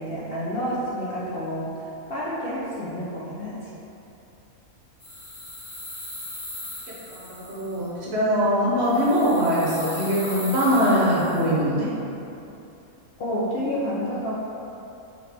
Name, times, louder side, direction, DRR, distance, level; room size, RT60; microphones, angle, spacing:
voice 1, 0.0-3.6 13.2-14.3, equal, 55° left, -8 dB, 0.7 m, -29 dB
sound 1, 5.0-7.8 8.8-11.5, left 1 dB, 40° left, 1.0 m, -39 dB
voice 2, 7.1-11.9, equal, 55° right, -7 dB, 1.0 m, -22 dB
5.0 x 2.8 x 3.3 m, 2.9 s
omnidirectional pair, 1.5 m